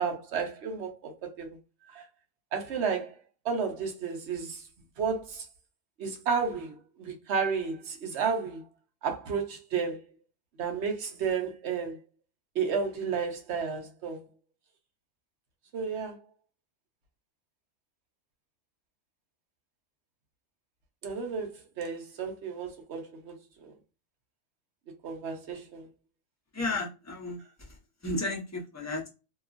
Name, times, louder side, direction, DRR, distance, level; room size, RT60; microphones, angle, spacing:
voice 1, 0.0-1.6 1.9-2.0 2.5-3.1 3.4-4.6 5.0-5.5 6.0-8.7 9.0-10.0 10.6-12.0 12.5-14.2 15.7-16.2 21.0-23.7 25.0-25.9, right 6 dB, 55° right, 0.9 m, -32 dB
voice 2, 26.5-27.8 28.0-29.1, left 2 dB, 20° left, 0.5 m, -33 dB
2.9 x 2.3 x 2.4 m
omnidirectional pair, 1.5 m